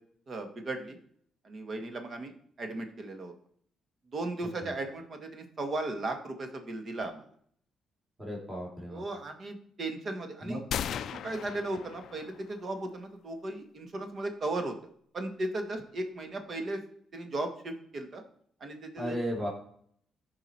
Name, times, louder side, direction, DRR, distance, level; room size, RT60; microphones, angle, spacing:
voice 1, 0.3-1.0 1.4-2.3 2.6-3.3 4.1-7.2 8.9-10.6 11.0-14.7 15.1-16.8 17.1-18.2 18.6-19.2, right 2 dB, 45° right, 5 dB, 1.8 m, -36 dB
voice 2, 8.2-9.0 10.4-10.6 19.0-19.5, equal, 20° right, -2 dB, 3.2 m, -34 dB
sound 1, 10.7-12.6, left 9 dB, 70° left, 0.3 m, -37 dB
14.0 x 5.0 x 4.5 m, 0.62 s
cardioid pair, 90°, 0 cm